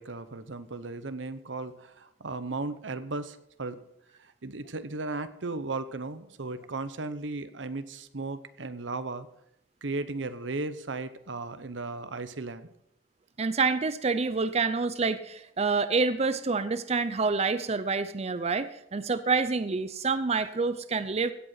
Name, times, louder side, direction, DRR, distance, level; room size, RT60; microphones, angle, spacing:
voice 1, 0.0-3.8 4.2-9.3 9.8-12.7, right 3 dB, 85° right, 12 dB, 1.0 m, -36 dB
voice 2, 13.4-21.3, right 4 dB, 35° right, 12 dB, 0.6 m, -27 dB
16.5 x 8.2 x 5.8 m, 0.77 s
head